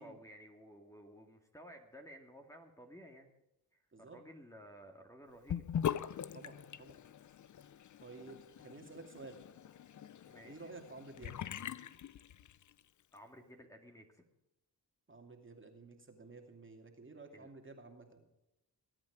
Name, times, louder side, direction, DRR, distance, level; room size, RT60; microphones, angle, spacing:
voice 1, 0.0-3.3 3.7-5.7 10.2-10.7 13.1-14.2 17.3-17.5, equal, 5° left, 2 dB, 2.1 m, -55 dB
Sink (filling or washing) / Bathtub (filling or washing), 5.5-12.8, left 9 dB, 45° left, 0.6 m, -42 dB
voice 2, 6.3-7.0 8.0-9.4 10.4-11.4 15.1-18.3, right 3 dB, 30° right, 3 dB, 2.5 m, -52 dB
21.0 x 8.8 x 4.9 m, 0.89 s
cardioid pair, 65°, 42 cm